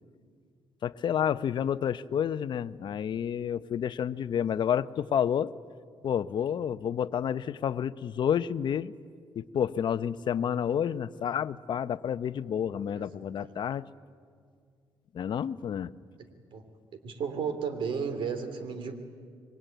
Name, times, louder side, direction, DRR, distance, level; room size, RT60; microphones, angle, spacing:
voice 1, 0.8-5.5 6.0-8.9 9.3-13.9 15.1-15.9, left 8 dB, 55° left, 13 dB, 0.8 m, -30 dB
voice 2, 17.0-19.0, right 6 dB, 65° right, 9 dB, 3.1 m, -33 dB
26.5 x 23.0 x 9.2 m, 2.1 s
cardioid pair, 100°, 9 cm